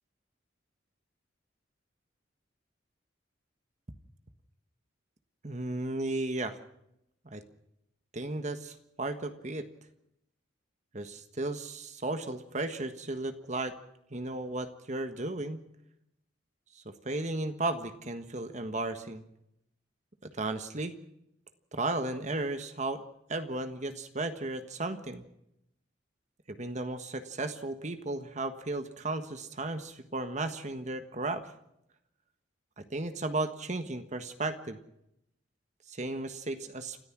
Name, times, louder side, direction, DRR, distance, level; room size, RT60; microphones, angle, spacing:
voice 1, 5.4-6.6 7.3-7.4 8.1-9.7 10.9-13.7 14.1-15.6 16.7-19.2 20.2-21.0 21.7-23.0 23.3-25.2 26.5-31.5 32.8-34.8 35.9-37.0, right 2 dB, 40° right, 8 dB, 1.5 m, -35 dB
29.5 x 14.0 x 6.1 m, 0.79 s
head